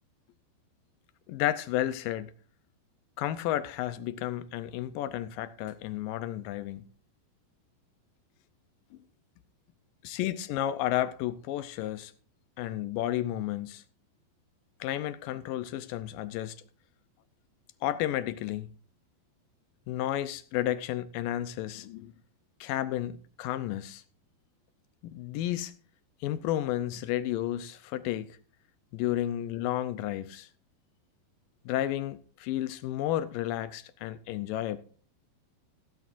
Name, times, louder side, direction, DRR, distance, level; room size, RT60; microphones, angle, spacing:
voice 1, 1.3-2.3 3.2-6.8 10.0-12.1 12.6-13.8 14.8-16.6 17.8-18.7 19.9-22.1 22.6-24.0 25.0-25.7 26.2-28.3 28.9-30.5 31.7-34.8, left 13 dB, 80° left, 2.0 m, -32 dB
15.5 x 13.5 x 2.5 m
omnidirectional pair, 4.5 m